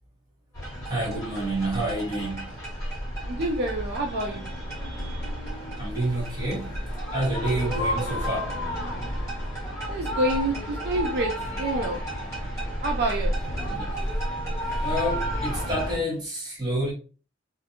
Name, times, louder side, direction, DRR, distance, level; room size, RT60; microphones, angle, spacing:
sound 1, 0.5-16.0, equal, 15° left, 1.3 m, -31 dB
voice 1, 0.8-2.5 5.8-6.8 7.1-8.7 13.7-14.0 14.8-16.9, right 1 dB, 20° right, 1.0 m, -29 dB
voice 2, 3.2-4.5 9.9-12.0 12.3-12.5 12.8-13.3, right 1 dB, 55° right, 0.4 m, -28 dB
2.5 x 2.4 x 2.7 m
head